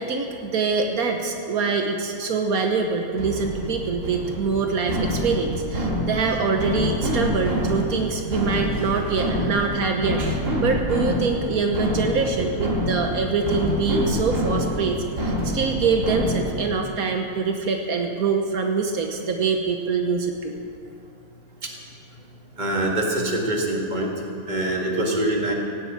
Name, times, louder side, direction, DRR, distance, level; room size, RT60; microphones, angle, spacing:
voice 1, 0.0-20.6, right 4 dB, 75° right, 3 dB, 1.5 m, -24 dB
sound 1, 3.2-16.7, equal, 55° right, 2.9 m, -26 dB
voice 2, 22.6-24.1 24.5-25.5, right 1 dB, 30° right, -1 dB, 2.1 m, -24 dB
17.5 x 7.9 x 8.6 m, 2.4 s
omnidirectional pair, 1.5 m